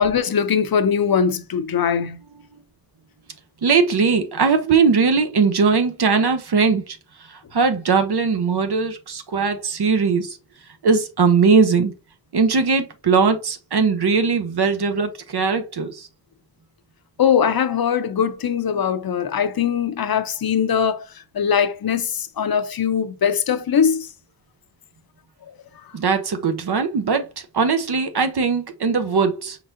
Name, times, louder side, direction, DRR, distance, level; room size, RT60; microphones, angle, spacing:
voice 1, 0.0-2.2 17.2-21.0 21.3-24.1, left 7 dB, 65° left, 0.6 m, -21 dB
voice 2, 3.6-10.4 10.8-11.9 12.3-16.1 25.9-29.6, right 5 dB, 75° right, 0.7 m, -20 dB
4.6 x 3.9 x 2.6 m
wide cardioid pair, 60°, 39 cm